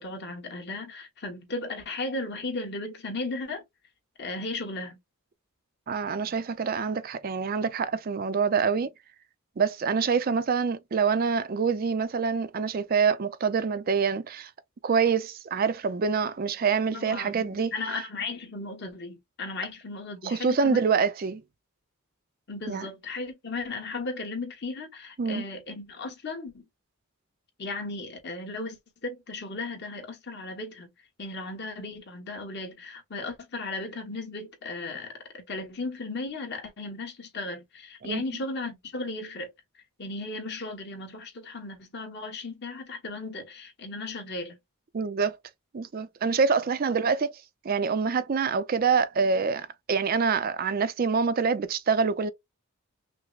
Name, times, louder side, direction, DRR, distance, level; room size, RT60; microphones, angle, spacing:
voice 1, 0.0-3.6 4.2-5.0 16.9-20.8 22.5-26.7 27.6-30.9 31.2-39.5 40.0-44.6, left 3 dB, 50° left, 1.1 m, -36 dB
voice 2, 5.9-8.9 9.6-14.5 14.8-17.7 20.2-21.4 22.7-22.9 25.2-25.4 38.0-38.2 44.9-45.3 45.7-47.3 47.6-52.3, right 5 dB, 40° right, 0.4 m, -26 dB
5.7 x 2.0 x 2.3 m
head